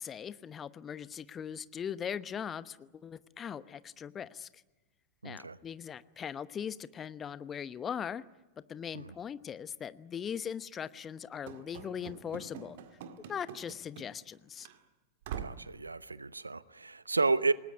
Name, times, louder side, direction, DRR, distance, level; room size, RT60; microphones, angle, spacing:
voice 1, 0.0-4.5 5.2-8.2 8.7-12.8 13.3-14.7, left 8 dB, 25° left, 0.9 m, -40 dB
voice 2, 5.2-5.6 8.9-9.1 15.4-17.5, right 3 dB, 80° right, 0.8 m, -31 dB
Run / Slam, 11.5-14.3 14.6-14.8 15.2-15.7, right 8 dB, 55° right, 1.9 m, -45 dB
28.5 x 19.0 x 9.9 m
figure-of-eight pair, 90°, 0 cm